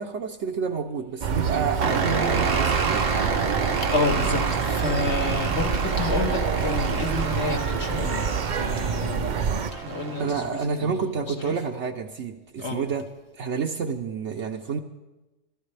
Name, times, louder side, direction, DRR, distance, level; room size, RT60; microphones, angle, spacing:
voice 1, 0.0-3.0 10.2-13.1 13.4-14.8, right 5 dB, 65° right, 3 dB, 1.1 m, -29 dB
sound 1, 1.2-9.7, right 6 dB, 45° right, 0.6 m, -27 dB
sound 2, 1.8-10.5, right 4 dB, 90° right, 1.6 m, -29 dB
voice 2, 3.9-8.3 8.6-9.4 9.7-11.0 11.4-11.5 12.6-12.8, left 3 dB, 60° left, 3 dB, 1.8 m, -29 dB
24.5 x 13.5 x 3.3 m, 1.1 s
omnidirectional pair, 1.3 m